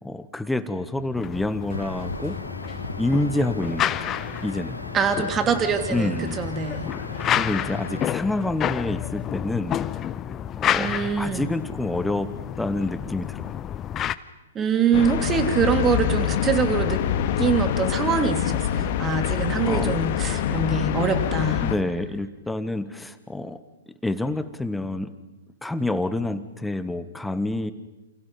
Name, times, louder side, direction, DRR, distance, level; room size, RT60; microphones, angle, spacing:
voice 1, 0.0-2.4 3.0-4.8 5.9-6.4 7.4-9.8 10.6-10.9 11.2-12.3 12.6-13.6 19.7-19.9 21.6-23.6 23.9-25.1 25.6-27.7, left 2 dB, 5° left, 12 dB, 1.5 m, -28 dB
sound 1, 1.2-14.2, left 10 dB, 25° left, 0.8 m, -30 dB
sound 2, 1.7-8.1, left 2 dB, 90° left, 2.1 m, -37 dB
voice 2, 4.9-6.9 10.7-11.5 14.5-17.0 17.4-21.6, right 6 dB, 20° right, 8 dB, 2.8 m, -24 dB
sound 3, 14.9-21.8, left 10 dB, 45° left, 1.9 m, -25 dB
29.0 x 28.5 x 5.5 m, 1.1 s
figure-of-eight pair, 110°, 0 cm